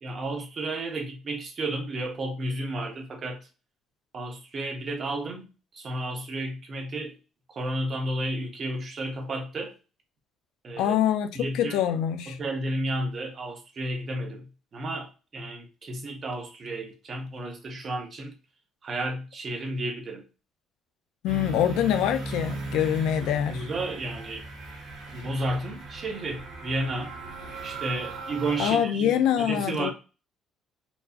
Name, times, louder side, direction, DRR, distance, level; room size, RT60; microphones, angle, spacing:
voice 1, 0.0-3.4 4.1-5.4 5.7-7.2 7.5-9.7 10.6-11.0 11.3-11.8 12.3-14.5 14.7-18.3 18.8-20.2 23.2-24.5 25.1-27.1 27.6-29.9, right 1 dB, 35° right, 0.8 m, -32 dB
voice 2, 10.8-12.4 21.2-23.7 28.6-29.9, left 10 dB, 85° left, 0.4 m, -25 dB
sound 1, 21.3-28.7, right 3 dB, 80° right, 1.9 m, -37 dB
4.4 x 2.0 x 2.7 m
cardioid pair, 145°, 0 cm